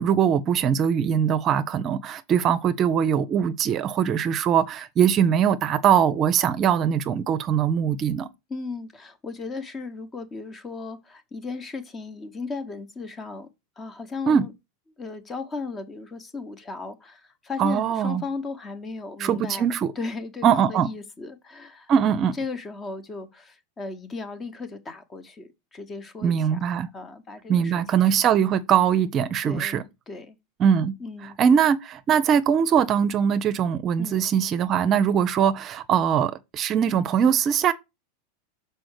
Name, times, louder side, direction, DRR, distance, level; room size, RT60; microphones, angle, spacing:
voice 1, 0.0-8.3 14.3-14.4 17.6-18.2 19.2-19.9 20.4-20.9 21.9-22.3 26.2-26.9 27.5-29.8 30.6-30.9 31.4-37.7, right 8 dB, 40° right, 0.6 m, -21 dB
voice 2, 8.5-13.5 13.8-14.5 15.0-19.7 19.9-21.9 22.3-26.6 26.9-27.7 29.4-29.8 30.1-30.4 31.0-31.4 34.0-34.3, left 4 dB, 25° left, 1.2 m, -36 dB
6.2 x 4.6 x 4.8 m
hypercardioid pair, 90°, 0 cm